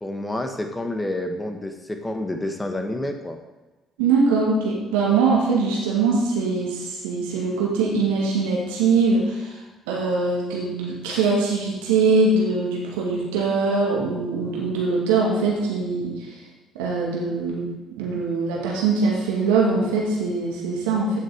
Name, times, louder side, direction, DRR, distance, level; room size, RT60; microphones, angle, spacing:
voice 1, 0.0-3.4, left 1 dB, 15° left, 5 dB, 1.6 m, -29 dB
voice 2, 4.0-9.5 9.9-16.3 16.7-17.7 18.0-21.2, right 4 dB, 70° right, -3 dB, 2.2 m, -22 dB
15.5 x 6.6 x 3.6 m, 1.1 s
figure-of-eight pair, 50°, 0 cm